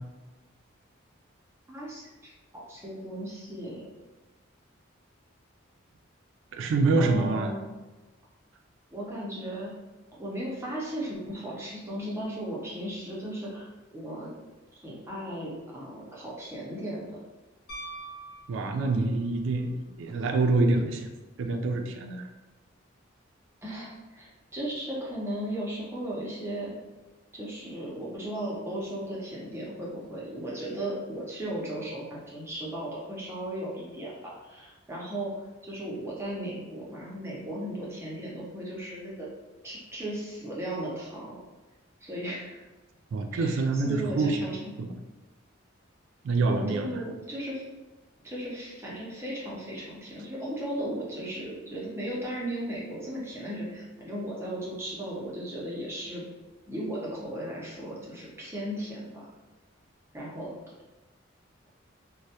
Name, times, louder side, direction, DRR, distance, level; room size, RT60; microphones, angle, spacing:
voice 1, 1.7-3.9 7.0-7.6 8.9-9.7 10.2-14.3 14.7-17.2 23.6-26.8 27.3-35.3 35.6-39.3 39.6-41.4 42.0-42.6 43.3-44.6 46.7-47.6 48.2-56.2 56.7-59.3 60.1-60.5, right 1 dB, 15° right, -6 dB, 0.5 m, -36 dB
voice 2, 6.5-7.5 18.5-21.1 21.4-22.2 43.1-44.4 44.8-44.9 46.2-47.0, right 3 dB, 70° right, 6 dB, 0.3 m, -26 dB
Piano, 17.7-19.3 21.6-21.7, right 2 dB, 50° left, 0.5 m, -43 dB
2.1 x 2.1 x 2.7 m, 1.2 s
head